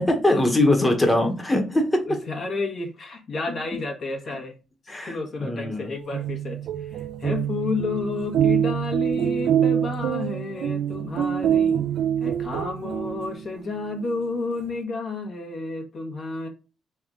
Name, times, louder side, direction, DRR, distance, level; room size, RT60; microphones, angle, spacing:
voice 1, 0.0-2.2 4.9-5.9, left 1 dB, 15° left, 1.1 m, -22 dB
voice 2, 2.1-4.5 5.0-11.8 12.2-16.5, left 3 dB, 50° left, 1.2 m, -31 dB
sound 1, 6.0-13.6, right 9 dB, 80° right, 0.5 m, -25 dB
3.5 x 3.5 x 3.7 m
cardioid pair, 90°, 0 cm